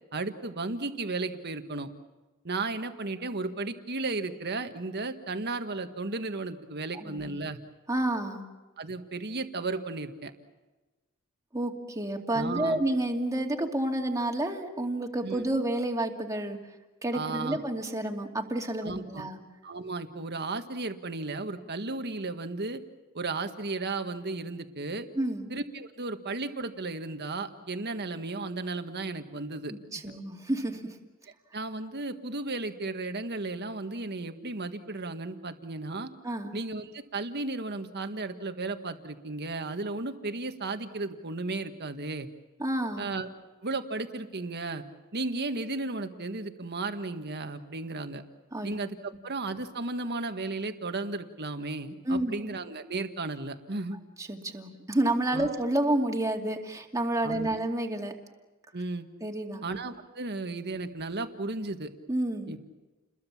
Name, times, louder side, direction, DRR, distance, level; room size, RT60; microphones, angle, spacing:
voice 1, 0.1-1.9 2.4-7.6 8.8-10.3 12.3-12.8 15.2-15.5 17.1-17.6 18.8-19.2 19.6-22.8 23.1-25.1 25.5-29.7 31.5-36.1 36.5-42.3 43.0-43.3 43.6-44.8 45.1-48.2 48.6-49.0 49.2-54.0 55.3-55.5 57.2-57.6 58.7-59.1 59.6-61.9 62.5-62.6, right 3 dB, 55° right, 7 dB, 1.7 m, -34 dB
voice 2, 7.9-8.4 11.5-16.6 17.0-19.4 25.1-25.5 29.7-30.8 36.2-36.5 42.6-43.1 48.5-48.7 52.1-52.4 54.2-58.1 59.2-59.6 62.1-62.5, right 1 dB, 15° right, 2 dB, 2.5 m, -30 dB
30.0 x 22.0 x 7.3 m, 1.2 s
head